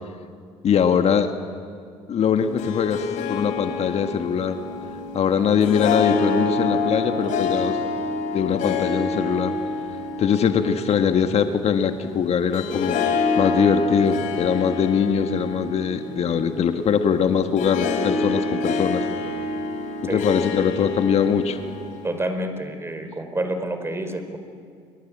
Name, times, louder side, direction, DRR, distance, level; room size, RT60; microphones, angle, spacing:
voice 1, 0.6-1.3 2.1-4.6 5.1-7.8 8.3-9.6 10.2-13.0 13.4-19.0 20.1-21.6, left 7 dB, 50° left, 7 dB, 1.7 m, -22 dB
Harp, 2.4-22.2, left 3 dB, 65° left, 4.1 m, -27 dB
voice 2, 22.0-24.4, right 1 dB, 20° right, 7 dB, 4.7 m, -28 dB
29.5 x 22.5 x 8.8 m, 2.2 s
supercardioid pair, 75°, 14 cm